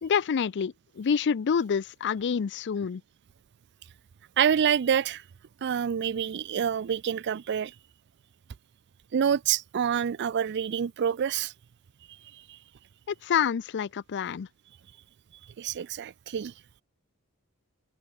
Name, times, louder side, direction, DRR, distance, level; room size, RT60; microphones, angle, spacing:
voice 1, 0.0-3.0 13.1-14.5, left 7 dB, 55° left, 0.4 m, -27 dB
voice 2, 4.4-5.2 5.6-7.7 9.1-11.5 12.3-12.6 15.6-16.5, right 8 dB, 50° right, 0.4 m, -27 dB
open air
head